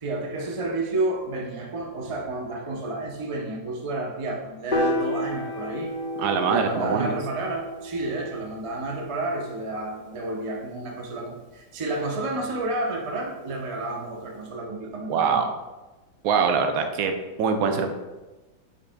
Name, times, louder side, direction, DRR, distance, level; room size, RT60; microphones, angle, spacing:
voice 1, 0.0-5.9 6.5-15.5, right 2 dB, 50° right, 0 dB, 0.3 m, -30 dB
Piano, 4.7-11.0, left 1 dB, 55° left, 0.5 m, -32 dB
voice 2, 6.2-7.2 15.1-15.5 16.2-17.9, right 6 dB, 90° right, 6 dB, 1.5 m, -23 dB
8.2 x 5.5 x 2.3 m, 1.1 s
omnidirectional pair, 2.1 m